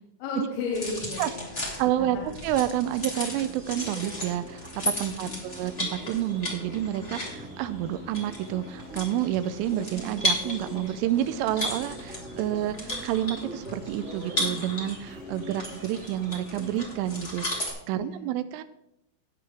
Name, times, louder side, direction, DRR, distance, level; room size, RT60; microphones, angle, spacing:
voice 1, 0.2-1.7 2.0-2.4 5.1-5.4 17.9-18.3, left 4 dB, 85° left, 0 dB, 3.9 m, -34 dB
sound 1, 0.7-17.7, left 1 dB, 30° left, 1.1 m, -35 dB
voice 2, 1.8-18.6, right 12 dB, 85° right, 12 dB, 3.0 m, -29 dB
sound 2, 2.6-17.4, right 1 dB, 45° right, 1.5 m, -52 dB
sound 3, 3.4-17.2, equal, 5° right, 0.7 m, -44 dB
19.0 x 6.9 x 3.3 m, 0.83 s
omnidirectional pair, 5.8 m